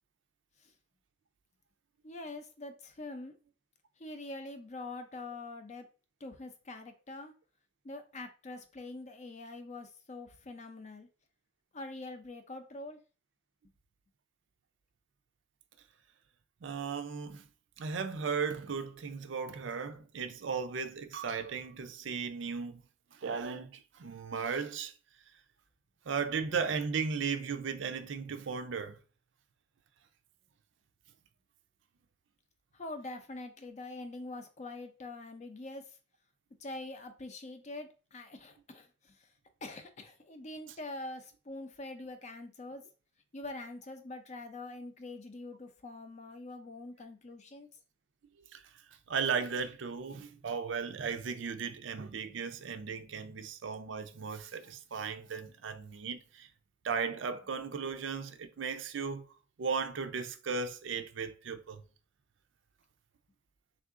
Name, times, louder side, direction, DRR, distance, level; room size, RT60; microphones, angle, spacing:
voice 1, 2.0-3.3 4.0-5.8 6.2-7.3 7.8-11.1 11.7-13.0 32.8-35.8 36.6-38.9 39.6-42.8 43.3-47.7, left 2 dB, 35° left, 0.5 m, -44 dB
voice 2, 16.6-17.4 17.8-22.8 23.1-24.9 26.1-29.0 40.7-40.8 48.5-48.6 49.1-56.5 56.8-59.2 59.6-61.8, right 5 dB, 70° right, 0.5 m, -36 dB
3.6 x 2.5 x 3.6 m
head